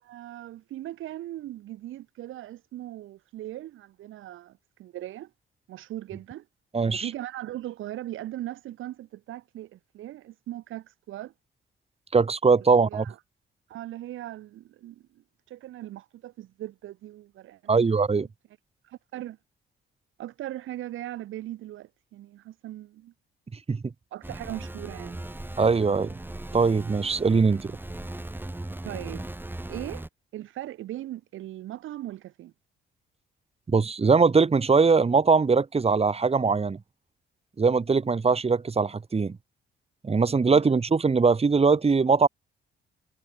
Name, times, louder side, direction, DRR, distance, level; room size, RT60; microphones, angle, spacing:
voice 1, 0.0-5.3 5.7-6.5 6.9-11.3 12.8-13.2 13.7-17.8 18.8-19.4 20.2-23.1 24.1-25.2 28.8-29.3 29.7-30.1 30.3-32.5 40.5-40.6, right 14 dB, 85° right, 3.6 m, -39 dB
voice 2, 6.7-7.1 12.1-13.0 17.7-18.3 23.7-23.8 25.6-26.1 26.5-27.7 33.7-36.8 37.6-39.3 40.0-42.3, right 4 dB, 30° right, 3.8 m, -21 dB
sound 1, 24.2-30.1, right 1 dB, 10° right, 3.1 m, -38 dB
cardioid pair, 90°, 20 cm